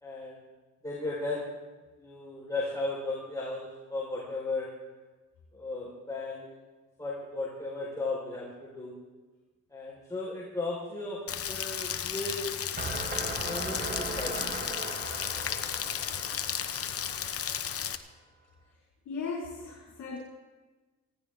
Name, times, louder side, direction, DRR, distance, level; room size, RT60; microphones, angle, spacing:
voice 1, 0.0-0.4 0.8-1.5 2.0-4.7 5.5-6.4 7.0-8.9 9.7-12.4 13.4-14.4, left 2 dB, 10° left, -5 dB, 4.8 m, -35 dB
Rain, 11.3-18.0, left 8 dB, 50° left, 1.0 m, -34 dB
sound 1, 12.8-17.7, right 2 dB, 35° right, 2.9 m, -39 dB
voice 2, 18.6-20.2, left 5 dB, 70° left, -5 dB, 4.9 m, -38 dB
20.0 x 16.5 x 3.8 m, 1.2 s
cardioid pair, 90°, 30 cm